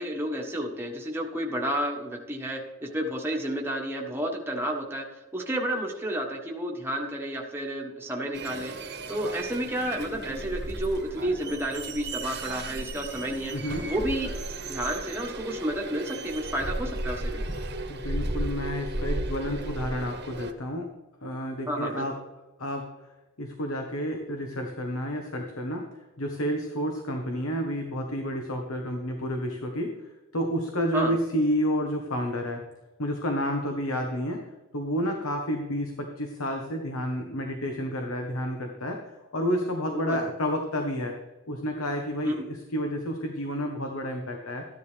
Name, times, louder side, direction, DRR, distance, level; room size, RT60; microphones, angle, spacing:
voice 1, 0.0-5.0 5.3-8.7 9.1-13.5 13.8-14.3 14.7-17.4 21.7-22.0 30.9-31.1 39.9-40.2 42.2-42.3, right 1 dB, 10° right, 0 dB, 1.4 m, -31 dB
sound 1, 8.3-20.5, right 2 dB, 50° right, 1.3 m, -34 dB
voice 2, 13.5-13.8 17.9-20.9 21.2-22.1 22.6-22.8 23.4-25.8 26.2-29.9 30.3-32.6 33.0-34.4 34.7-39.0 39.3-41.2 41.5-44.7, equal, 65° left, 3 dB, 1.2 m, -30 dB
14.0 x 10.5 x 3.4 m, 1.1 s
head